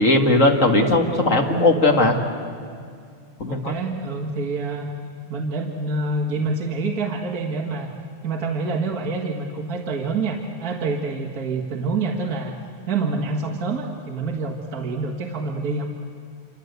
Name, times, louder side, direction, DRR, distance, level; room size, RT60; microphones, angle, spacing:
voice 1, 0.0-2.2 3.4-3.8, left 2 dB, 30° left, 2 dB, 1.8 m, -18 dB
voice 2, 3.5-4.9 5.3-7.9 8.2-12.5 12.9-15.8, right 3 dB, 40° right, -1 dB, 1.7 m, -27 dB
27.5 x 26.0 x 8.1 m, 2.2 s
omnidirectional pair, 3.3 m